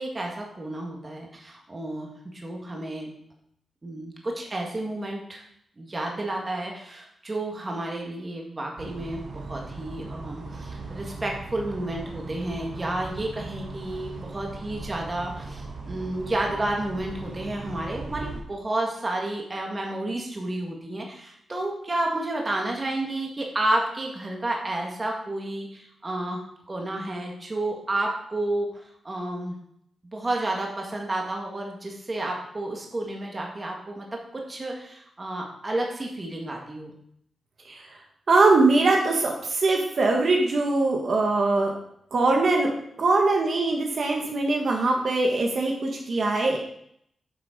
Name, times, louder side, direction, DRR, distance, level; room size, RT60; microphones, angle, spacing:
voice 1, 0.0-3.1 3.8-5.4 5.8-26.4 26.7-29.6 30.1-36.9, right 1 dB, 25° right, 0 dB, 1.8 m, -31 dB
sound 1, 8.8-18.4, right 3 dB, 85° right, 2.2 m, -38 dB
voice 2, 38.3-41.7 42.1-42.7 43.0-46.6, right 3 dB, 50° right, 1 dB, 1.7 m, -22 dB
8.8 x 7.0 x 5.1 m, 0.71 s
wide cardioid pair, 155°, 0 cm